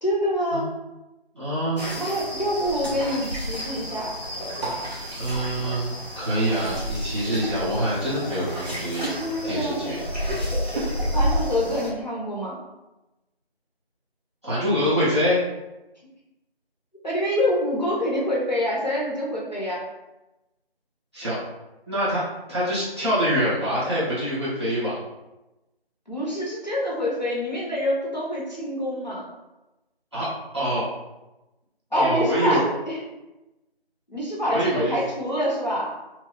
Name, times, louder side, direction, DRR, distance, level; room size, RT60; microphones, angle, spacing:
voice 1, 0.0-0.7 2.0-4.1 9.0-9.8 11.1-12.6 17.0-19.8 26.1-29.3 31.9-33.0 34.1-35.9, equal, 45° left, -5 dB, 0.8 m, -26 dB
voice 2, 1.3-1.8 5.1-9.1 9.4-10.0 14.4-15.4 21.1-21.4 21.9-25.0 30.1-30.3 30.5-30.8 31.9-32.6 34.5-34.9, equal, 25° right, -11 dB, 1.1 m, -25 dB
sound 1, 1.8-11.9, equal, 45° right, 1.1 m, -30 dB
3.0 x 2.2 x 3.4 m, 0.99 s
figure-of-eight pair, 175°, 31 cm